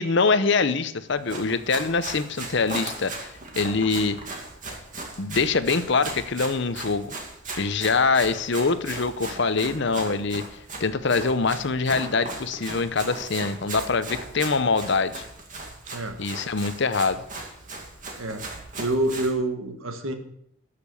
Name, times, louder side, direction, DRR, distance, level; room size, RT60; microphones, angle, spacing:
voice 1, 0.0-4.2 5.2-7.1 7.6-10.5 10.8-15.2 16.2-17.2, left 4 dB, 55° left, 12 dB, 0.7 m, -24 dB
Run, 1.1-19.3, right 2 dB, 40° right, 2.4 m, -37 dB
voice 2, 15.9-16.2 18.1-18.5 18.7-20.1, right 1 dB, 75° right, 6 dB, 1.6 m, -27 dB
13.5 x 6.8 x 7.0 m, 0.75 s
head